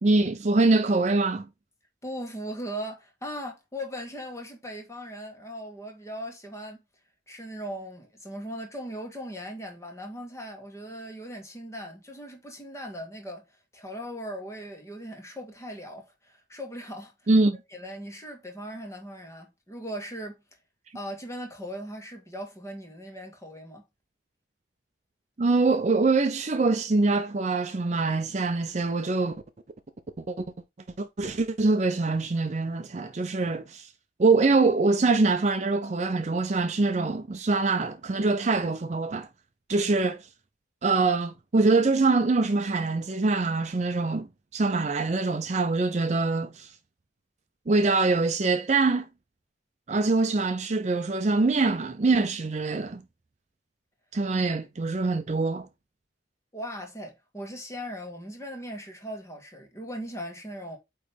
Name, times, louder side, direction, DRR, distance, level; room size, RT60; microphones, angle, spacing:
voice 1, 0.0-1.5 17.3-17.6 25.4-29.4 30.3-30.5 31.0-33.9 34.2-39.3 39.7-40.3 40.8-44.3 44.5-46.7 47.7-49.0 49.9-53.0 54.1-55.7, right 3 dB, 35° right, 0.5 m, -24 dB
voice 2, 2.0-6.8 7.3-13.5 13.7-17.1 17.7-20.4 20.9-23.8 56.5-60.8, equal, 15° left, 1.6 m, -39 dB
8.8 x 3.1 x 3.4 m
head